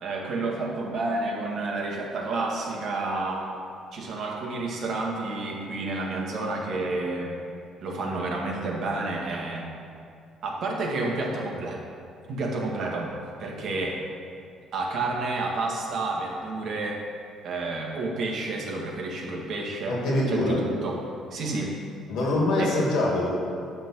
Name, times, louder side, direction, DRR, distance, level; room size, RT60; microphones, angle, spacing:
voice 1, 0.0-3.5 3.9-7.4 7.8-9.6 10.4-11.8 12.3-13.1 13.4-14.0 14.7-17.0 17.4-20.0 20.3-21.0 21.3-21.8 22.6-22.7, right 2 dB, 55° right, -1 dB, 1.8 m, -30 dB
voice 2, 19.9-20.6 22.1-23.3, left 1 dB, 75° left, -2 dB, 2.5 m, -24 dB
11.0 x 3.7 x 7.6 m, 2.4 s
cardioid pair, 115°, 0 cm